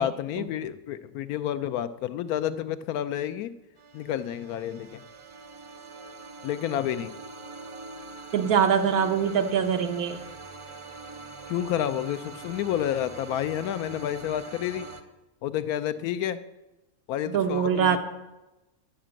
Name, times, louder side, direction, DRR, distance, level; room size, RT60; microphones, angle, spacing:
voice 1, 0.0-3.5 3.9-5.0 6.4-7.1 11.5-14.9 15.4-16.4 17.1-18.0, left 11 dB, 85° left, 12 dB, 1.1 m, -30 dB
sound 1, 3.8-15.0, right 3 dB, 40° right, 0.4 m, -43 dB
voice 2, 8.3-10.2 17.3-18.0, right 7 dB, 80° right, 6 dB, 1.4 m, -23 dB
10.0 x 5.9 x 7.5 m, 1.0 s
omnidirectional pair, 1.5 m